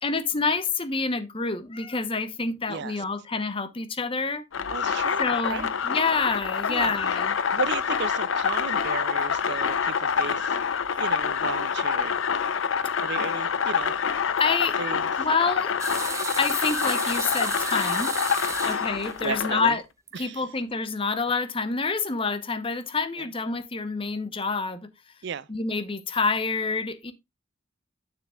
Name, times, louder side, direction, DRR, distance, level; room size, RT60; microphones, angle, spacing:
voice 1, 0.0-4.4 5.2-7.4 14.4-14.8 15.2-15.7 16.4-18.1 18.7-19.8 20.2-24.9 25.5-27.1, left 4 dB, 25° left, 0.8 m, -27 dB
voice 2, 2.7-3.0 4.7-5.7 6.7-7.2 7.5-10.6 11.0-12.2 13.0-13.9 14.8-15.3 18.6-18.8 19.2-19.8 20.1-20.4 23.2-23.3 25.2-25.5, right 6 dB, 55° right, 0.4 m, -35 dB
sound 1, 4.5-19.7, left 6 dB, 70° left, 0.5 m, -26 dB
sound 2, 15.8-19.7 20.1-20.2 21.3-21.4, right 5 dB, 15° right, 0.7 m, -34 dB
9.5 x 6.6 x 2.3 m
head